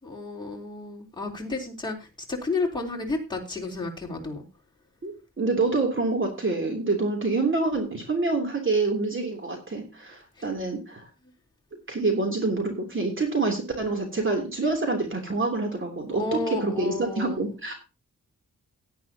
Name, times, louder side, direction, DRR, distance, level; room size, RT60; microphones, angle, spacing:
voice 1, 0.0-4.4 10.4-10.5 16.1-17.4, left 3 dB, 15° left, -3 dB, 3.9 m, -32 dB
voice 2, 5.0-11.1 11.9-17.7, right 3 dB, 40° right, 2 dB, 3.3 m, -27 dB
17.5 x 9.7 x 2.9 m, 0.29 s
wide cardioid pair, 120°, 32 cm